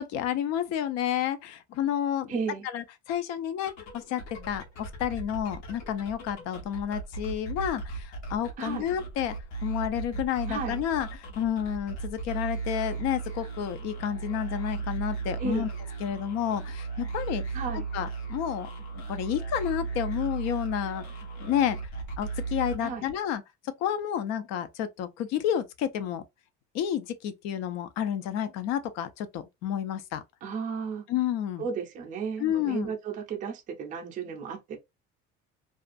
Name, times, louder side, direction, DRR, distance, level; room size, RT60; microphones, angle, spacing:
voice 1, 0.0-2.3 2.7-9.4 9.6-15.7 16.0-17.4 17.9-18.7 18.9-21.0 21.4-21.8 22.2-23.4 23.8-26.2 26.7-30.2 31.1-31.7 32.4-32.9, left 10 dB, 60° left, 0.5 m, -30 dB
voice 2, 2.3-2.7 8.6-8.9 10.5-10.8 15.4-15.7 17.5-17.8 22.8-23.1 30.4-31.0 31.6-34.8, right 5 dB, 25° right, 0.5 m, -34 dB
sound 1, 3.6-23.3, right 4 dB, 75° left, 1.0 m, -36 dB
2.4 x 2.3 x 2.5 m
cardioid pair, 170°, 30 cm